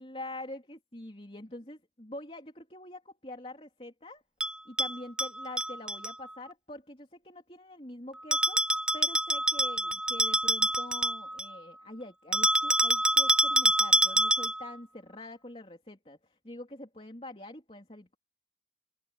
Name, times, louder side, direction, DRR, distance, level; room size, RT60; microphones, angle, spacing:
voice 1, 0.0-4.2 4.7-8.6 8.9-16.2 16.4-18.2, left 1 dB, 30° left, 3.4 m, -45 dB
Bell, 4.4-6.1 8.3-11.6 12.3-14.7, right 1 dB, 5° right, 0.4 m, -26 dB
open air
head